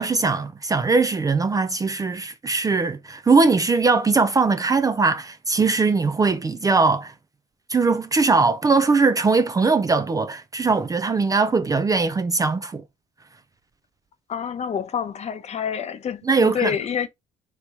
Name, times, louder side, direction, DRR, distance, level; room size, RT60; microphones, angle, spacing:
voice 1, 0.0-7.1 7.7-12.8 16.2-16.7, right 4 dB, 20° right, 0.4 m, -20 dB
voice 2, 14.3-17.1, left 8 dB, 40° left, 0.7 m, -27 dB
3.4 x 3.0 x 4.0 m
cardioid pair, 110°, 17 cm